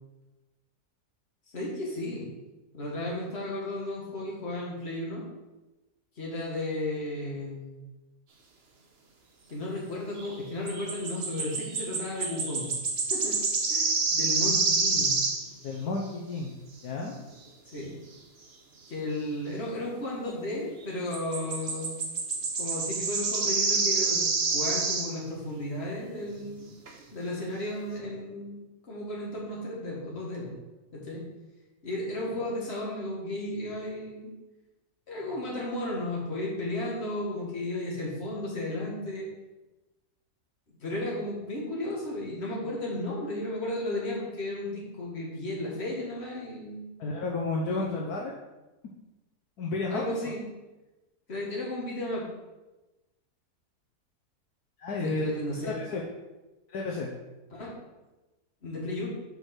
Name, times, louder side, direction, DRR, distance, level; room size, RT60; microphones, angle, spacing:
voice 1, 1.5-2.2 2.7-5.2 6.2-7.7 9.5-12.7 13.1-13.4 13.7-15.1 17.7-17.9 18.9-21.9 22.6-26.6 27.1-28.6 28.9-30.5 30.9-31.2 31.8-34.3 35.1-39.3 40.8-46.8 47.7-47.9 49.9-50.4 51.3-52.2 55.0-55.8 57.5-57.7 58.6-59.1, left 1 dB, 40° left, -4 dB, 2.0 m, -34 dB
sound 1, 10.2-10.4 10.7-15.5 21.1-25.2 26.5-26.6 26.9-27.0, right 4 dB, 50° right, 0.9 m, -28 dB
voice 2, 15.6-16.6 16.8-17.1 47.0-48.3 49.6-50.0 54.8-56.0 56.7-57.1, left 3 dB, 75° left, -1 dB, 1.3 m, -32 dB
5.5 x 4.6 x 5.9 m, 1.1 s
omnidirectional pair, 1.7 m